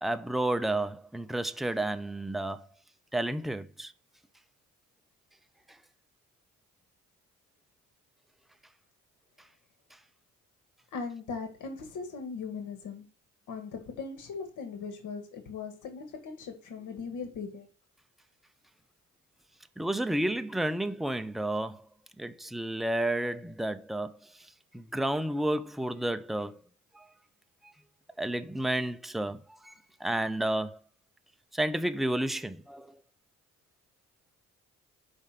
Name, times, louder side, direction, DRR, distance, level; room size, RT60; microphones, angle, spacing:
voice 1, 0.0-2.7 3.1-3.9 19.8-21.9 22.2-24.5 24.7-26.6 26.9-27.1 27.6-27.7 28.2-29.7 30.0-30.8 31.5-32.9, right 1 dB, ahead, 0.6 m, -31 dB
voice 2, 10.9-13.1 13.5-17.7, left 5 dB, 80° left, 1.9 m, -39 dB
5.5 x 5.3 x 6.6 m
cardioid pair, 90°, 30 cm